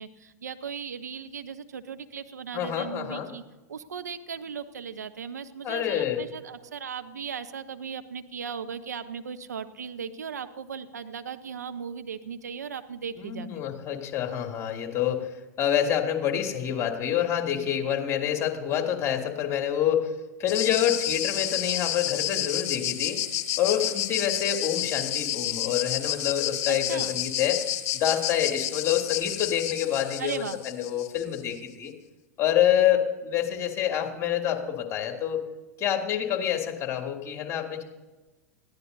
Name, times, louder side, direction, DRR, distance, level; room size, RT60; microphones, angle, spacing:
voice 1, 0.0-3.4 3.7-13.7 26.7-27.2 30.2-30.6, right 6 dB, 80° right, 9 dB, 0.9 m, -37 dB
voice 2, 2.5-3.3 5.6-6.2 13.2-15.3 15.6-20.1 20.4-23.2 23.6-27.6 27.9-31.9 32.4-35.4 35.8-37.8, left 10 dB, 35° left, 3 dB, 2.7 m, -27 dB
sound 1, 20.5-31.4, left 12 dB, 55° left, 1.4 m, -30 dB
21.0 x 15.0 x 2.7 m, 1.1 s
hypercardioid pair, 95°, 9 cm